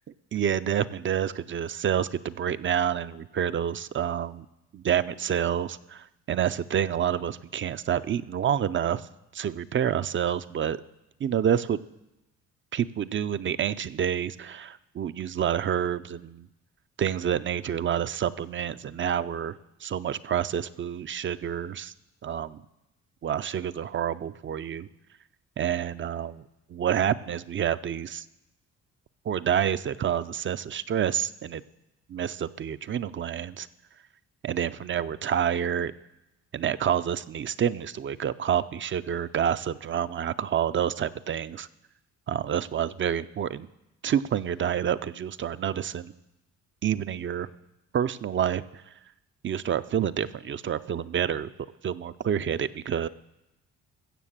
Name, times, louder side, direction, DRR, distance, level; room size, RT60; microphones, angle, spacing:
voice 1, 0.3-4.5 4.7-9.1 9.3-10.8 11.2-11.8 12.7-16.5 17.0-21.9 22.2-22.6 23.2-24.9 25.6-26.4 26.7-28.2 29.3-31.6 32.1-33.7 34.4-35.9 36.5-41.7 42.3-43.7 44.0-46.1 46.8-47.5 47.9-48.8 49.4-51.5 51.8-53.1, right 9 dB, 40° right, 14 dB, 0.5 m, -28 dB
15.0 x 7.0 x 7.4 m, 0.93 s
cardioid pair, 90°, 30 cm